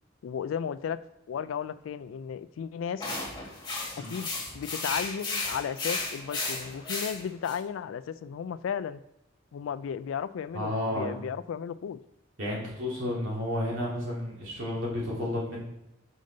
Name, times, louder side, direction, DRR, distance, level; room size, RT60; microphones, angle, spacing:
voice 1, 0.2-1.0 1.3-3.2 4.0-9.0 9.5-12.0, left 7 dB, 80° left, 13 dB, 0.3 m, -34 dB
sound 1, 3.0-7.6, left 3 dB, 20° left, 1.5 m, -34 dB
voice 2, 10.5-11.2 12.4-15.6, left 1 dB, 80° right, -5 dB, 2.3 m, -31 dB
5.3 x 5.1 x 3.9 m, 0.86 s
head